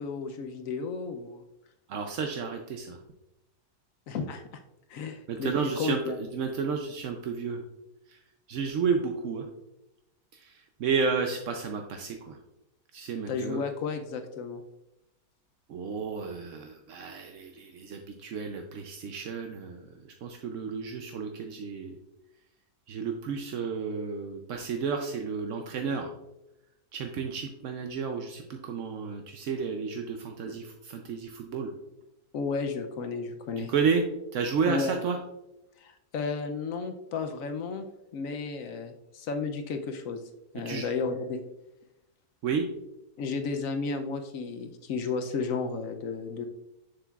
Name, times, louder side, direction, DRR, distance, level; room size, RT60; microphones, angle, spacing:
voice 1, 0.0-1.4 4.1-4.6 4.9-6.2 13.3-14.6 30.5-30.6 32.3-33.7 34.7-35.0 35.8-37.9 38.1-40.2 40.5-41.4 43.2-46.5, left 4 dB, 70° left, 7 dB, 0.8 m, -33 dB
voice 2, 1.9-3.0 5.3-7.6 8.1-8.2 8.5-9.5 10.3-12.4 12.9-13.6 15.7-22.0 22.9-26.1 26.9-31.7 33.6-34.0 34.3-35.2 40.6-40.9 42.4-42.7, right 5 dB, 65° right, 4 dB, 0.8 m, -32 dB
7.3 x 6.8 x 2.3 m, 0.92 s
omnidirectional pair, 1.8 m